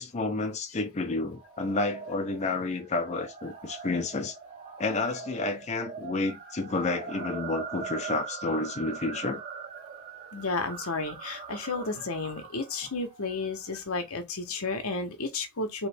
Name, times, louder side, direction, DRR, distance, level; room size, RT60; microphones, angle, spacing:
voice 1, 0.0-4.4 4.8-9.4, left 3 dB, 30° left, 0.6 m, -30 dB
sound 1, 1.3-13.8, right 5 dB, 35° right, 1.0 m, -42 dB
voice 2, 10.3-15.9, left 3 dB, 75° left, 1.1 m, -32 dB
4.0 x 3.1 x 3.4 m
head